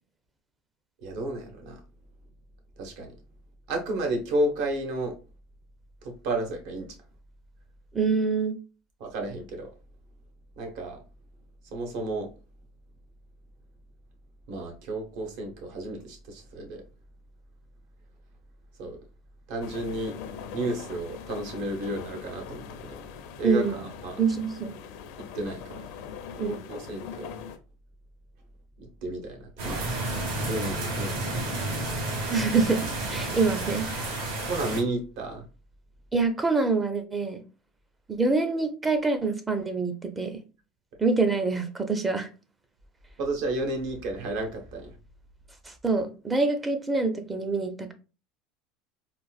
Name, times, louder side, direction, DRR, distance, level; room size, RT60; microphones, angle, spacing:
voice 1, 1.0-1.8 2.8-3.1 3.7-5.1 6.0-6.9 9.0-9.7 10.6-11.0 11.7-12.3 14.5-16.8 18.8-19.0 19.5-20.2 20.5-22.6 23.4-24.1 25.3-25.8 26.4-27.3 28.8-29.9 30.4-31.4 31.7-31.9 34.4-35.4 43.2-44.9, right 1 dB, 65° right, 1.0 m, -32 dB
voice 2, 7.9-8.6 23.4-23.9 24.2-24.7 26.4-26.7 32.3-34.2 36.1-37.4 38.1-40.4 41.0-42.3 45.7-47.9, right 4 dB, 15° right, 0.5 m, -26 dB
sound 1, 19.6-27.6, left 7 dB, 70° left, 0.5 m, -42 dB
sound 2, 29.6-34.8, right 2 dB, 90° right, 1.3 m, -31 dB
3.8 x 2.4 x 2.4 m
supercardioid pair, 140°, 0 cm